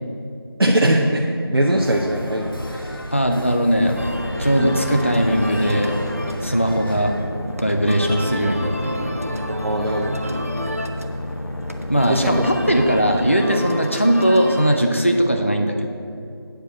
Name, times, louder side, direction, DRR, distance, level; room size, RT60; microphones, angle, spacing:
voice 1, 0.6-1.3 1.5-3.0 4.6-4.8 9.5-10.2 11.9-12.4, right 1 dB, 70° right, -1 dB, 0.9 m, -21 dB
sound 1, 1.6-7.2, equal, 60° left, 1.3 m, -34 dB
voice 2, 3.1-4.0 4.4-5.9 6.4-7.2 7.6-9.2 11.9-15.9, equal, 30° left, 4 dB, 0.5 m, -19 dB
sound 2, 3.8-13.3, left 1 dB, 80° left, 1.1 m, -31 dB
sound 3, 4.0-14.8, equal, 35° right, 0.5 m, -32 dB
8.8 x 5.0 x 7.5 m, 2.5 s
figure-of-eight pair, 180°, 13 cm